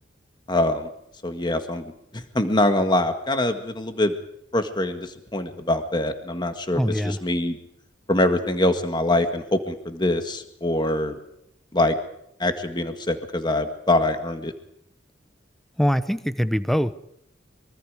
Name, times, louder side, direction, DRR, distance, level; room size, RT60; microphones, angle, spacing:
voice 1, 0.5-0.9 1.2-4.1 4.5-6.8 7.1-7.6 8.1-11.2 11.7-12.0 12.4-14.5, left 1 dB, 25° left, 7 dB, 1.8 m, -24 dB
voice 2, 6.7-7.2 15.8-16.9, equal, ahead, 13 dB, 0.9 m, -23 dB
25.0 x 24.0 x 5.0 m, 0.75 s
head